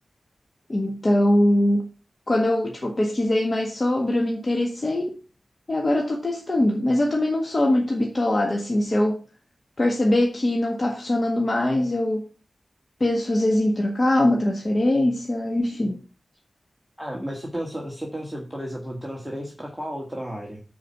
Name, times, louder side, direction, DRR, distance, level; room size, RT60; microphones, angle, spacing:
voice 1, 0.7-1.9 2.3-5.1 5.7-9.2 9.8-12.3 13.0-16.0, left 1 dB, 40° left, 1.6 m, -22 dB
voice 2, 17.0-20.6, equal, ahead, 2.2 m, -33 dB
9.5 x 4.9 x 5.9 m
cardioid pair, 50°, 0 cm